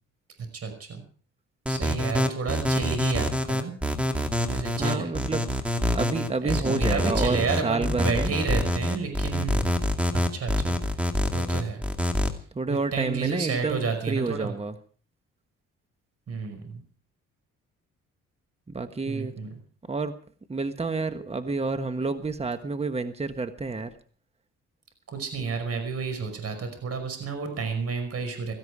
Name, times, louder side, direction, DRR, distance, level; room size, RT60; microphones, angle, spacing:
voice 1, 0.5-1.0 1.7-3.7 4.5-5.1 6.4-9.7 10.1-10.8 11.3-11.8 12.7-14.5 16.3-16.8 19.0-19.6 25.1-28.5, right 5 dB, 50° right, 7 dB, 5.6 m, -31 dB
sound 1, 1.7-12.3, left 1 dB, 5° right, 2.4 m, -26 dB
voice 2, 4.8-5.7 5.9-8.3 12.5-14.7 18.7-19.3 19.9-20.1 20.5-23.9, right 3 dB, 20° right, 10 dB, 1.3 m, -29 dB
17.0 x 15.5 x 4.9 m, 0.43 s
cardioid pair, 90°, 30 cm